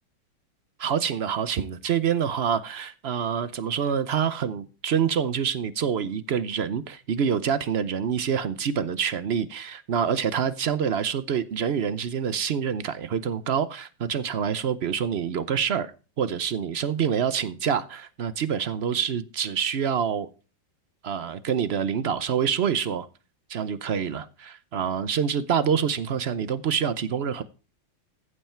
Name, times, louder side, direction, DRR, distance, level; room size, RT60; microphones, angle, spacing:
voice 1, 0.8-15.9 16.2-20.3 21.0-23.1 23.5-27.4, right 7 dB, 65° right, 0.6 m, -26 dB
14.5 x 8.1 x 4.4 m
omnidirectional pair, 2.0 m